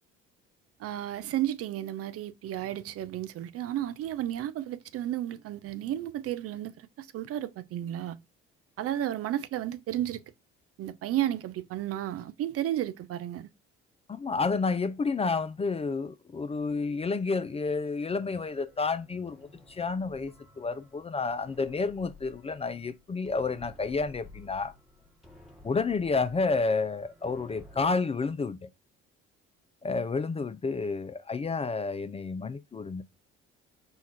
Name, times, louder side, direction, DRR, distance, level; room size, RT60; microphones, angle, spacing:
voice 1, 0.8-8.2 8.8-10.2 10.8-13.5, right 12 dB, 50° right, 0.5 m, -33 dB
voice 2, 14.1-24.7 25.6-28.7 29.8-33.0, left 4 dB, 20° left, 0.4 m, -30 dB
sound 1, 18.4-27.9, left 2 dB, ahead, 1.3 m, -54 dB
4.5 x 2.3 x 4.2 m
hypercardioid pair, 60°, 29 cm